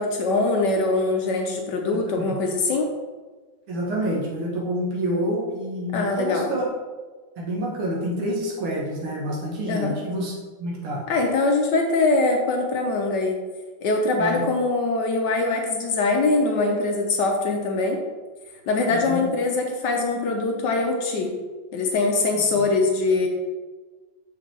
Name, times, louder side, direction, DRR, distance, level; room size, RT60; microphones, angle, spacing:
voice 1, 0.0-2.9 5.9-6.5 9.7-9.9 11.1-13.4 13.8-18.0 18.7-21.3 21.7-23.3, left 3 dB, 70° left, 2 dB, 1.1 m, -22 dB
voice 2, 3.7-6.6 7.4-11.0 14.2-14.4 18.9-19.2 22.3-22.6, equal, 85° right, -3 dB, 2.2 m, -28 dB
6.6 x 5.3 x 3.3 m, 1.4 s
omnidirectional pair, 2.3 m